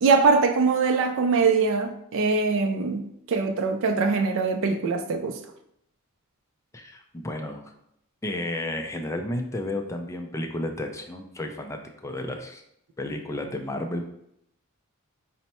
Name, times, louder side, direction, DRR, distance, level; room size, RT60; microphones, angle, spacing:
voice 1, 0.0-3.0 3.3-5.4, right 4 dB, 60° right, 0.4 m, -22 dB
voice 2, 6.7-7.7 8.2-12.6 13.0-14.1, left 1 dB, 15° left, 0.3 m, -32 dB
4.4 x 2.1 x 4.1 m
head